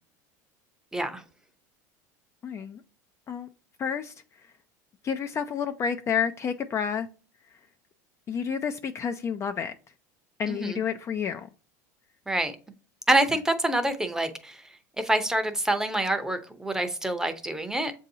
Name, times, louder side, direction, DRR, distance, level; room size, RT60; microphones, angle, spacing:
voice 1, 2.4-2.8 3.3-3.5 3.8-4.1 5.0-7.1 8.3-9.7 10.4-11.5, left 7 dB, 30° left, 0.4 m, -29 dB
voice 2, 10.5-10.8 12.3-12.5 13.1-14.6 15.0-17.9, right 1 dB, 5° right, 0.7 m, -26 dB
7.2 x 2.7 x 2.7 m
supercardioid pair, 105°, 9 cm